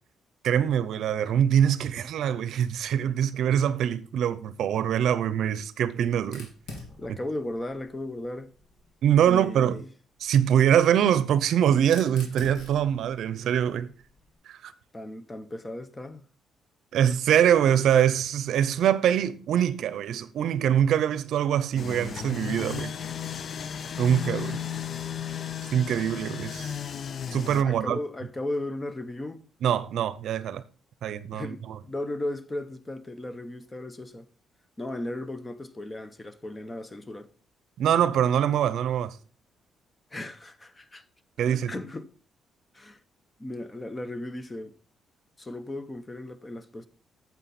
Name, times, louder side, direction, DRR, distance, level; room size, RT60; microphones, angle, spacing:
voice 1, 0.4-6.5 9.0-9.8 10.2-13.9 14.5-14.7 16.9-23.0 24.0-24.6 25.7-26.7 27.3-28.0 29.6-30.6 31.0-31.8 37.8-39.2 41.4-41.7, right 9 dB, 75° right, 0.6 m, -24 dB
Fire, 6.2-9.0 10.1-14.3, left 2 dB, 75° left, 3.1 m, -48 dB
voice 2, 7.0-8.5 9.2-9.9 14.9-16.2 27.6-29.5 31.3-34.3 34.8-37.3 40.1-41.0 41.5-42.1 42.7-43.0 43.4-44.7 45.4-46.9, left 1 dB, 20° left, 0.9 m, -36 dB
sound 1, 21.8-27.6, left 8 dB, 50° left, 0.5 m, -34 dB
9.1 x 7.2 x 4.2 m
cardioid pair, 90°, 0 cm